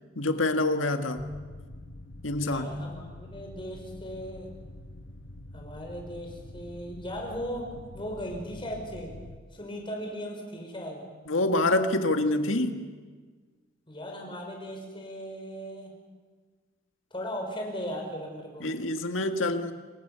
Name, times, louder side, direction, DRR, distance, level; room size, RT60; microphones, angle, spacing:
voice 1, 0.2-1.2 2.2-2.7 11.3-12.9 18.6-19.7, left 2 dB, 80° left, 6 dB, 1.8 m, -26 dB
sound 1, 1.2-9.4, left 1 dB, 60° left, 1.3 m, -46 dB
voice 2, 2.4-4.5 5.5-9.1 9.5-11.0 13.9-15.9 17.1-18.7, equal, 25° left, 1 dB, 5.8 m, -37 dB
26.5 x 24.5 x 6.9 m, 1.5 s
head